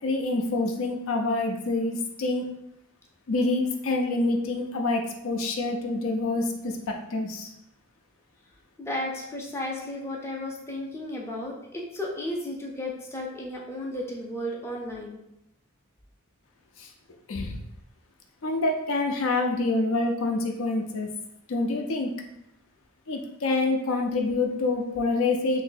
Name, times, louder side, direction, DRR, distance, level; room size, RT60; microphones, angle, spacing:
voice 1, 0.0-2.5 3.3-7.5 16.8-16.9 17.3-17.6 18.4-21.1 21.5-22.1 23.1-25.6, left 2 dB, 65° left, 2 dB, 0.5 m, -26 dB
voice 2, 8.8-15.2, left 1 dB, 10° left, -3 dB, 0.5 m, -34 dB
2.7 x 2.6 x 3.8 m, 0.80 s
head